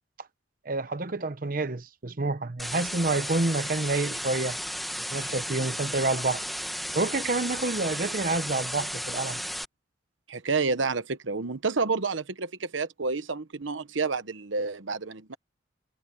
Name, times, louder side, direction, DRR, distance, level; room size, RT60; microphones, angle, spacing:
voice 1, 0.6-4.6 5.1-6.4 6.9-9.4, right 3 dB, 45° right, 0.9 m, -28 dB
sound 1, 2.6-9.6, equal, ahead, 1.1 m, -34 dB
voice 2, 10.3-15.4, right 4 dB, 85° right, 1.1 m, -29 dB
head